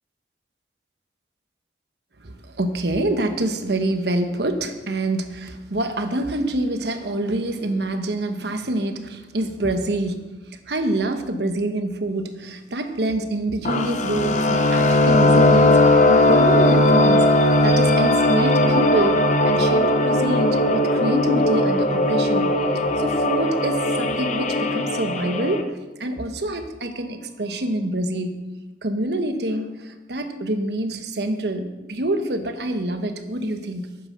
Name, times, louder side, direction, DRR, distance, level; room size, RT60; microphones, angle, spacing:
voice 1, 2.2-17.3 17.6-22.5 22.9-25.7 26.0-28.5 28.8-34.0, right 1 dB, 70° right, 7 dB, 1.1 m, -26 dB
sound 1, 13.7-25.6, left 1 dB, 40° left, 0.8 m, -18 dB
9.5 x 9.0 x 6.3 m, 1.1 s
head